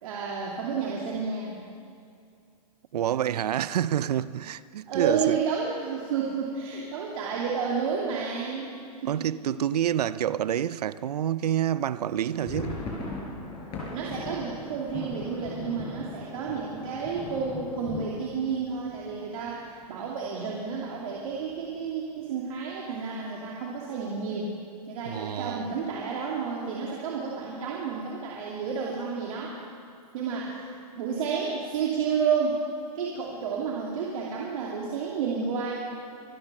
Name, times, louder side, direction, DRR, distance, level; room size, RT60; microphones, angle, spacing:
voice 1, 0.0-1.6 4.9-8.7 9.0-9.3 13.9-24.5 24.9-29.5 30.1-32.6 32.9-35.8, right 6 dB, 55° right, 2.6 m, -31 dB
voice 2, 2.9-5.4 9.1-12.8 25.0-25.7, right 10 dB, 75° right, 0.6 m, -28 dB
sound 1, 12.1-19.8 20.1-20.3 20.5-20.7 21.3-21.8, left 3 dB, 30° left, 4.8 m, -39 dB
25.0 x 9.7 x 5.9 m
hypercardioid pair, 135°, 20 cm